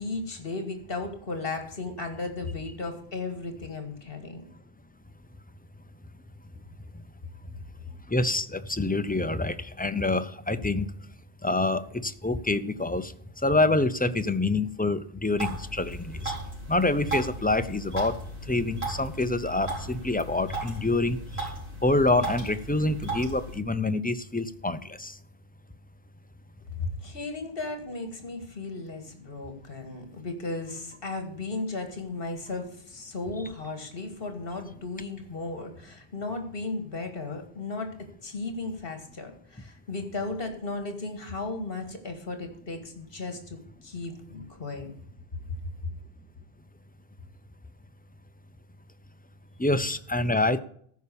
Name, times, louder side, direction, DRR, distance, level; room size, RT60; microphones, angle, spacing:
voice 1, 0.0-4.4 26.8-44.9, left 3 dB, 65° left, 6 dB, 2.1 m, -35 dB
voice 2, 8.1-10.9 11.4-13.1 13.4-16.3 16.7-18.2 18.5-21.2 21.8-25.1 49.6-50.6, left 2 dB, 15° left, 11 dB, 0.4 m, -26 dB
sound 1, 15.4-23.6, right 2 dB, 80° right, 4.5 m, -36 dB
14.0 x 5.6 x 6.9 m, 0.62 s
omnidirectional pair, 1.0 m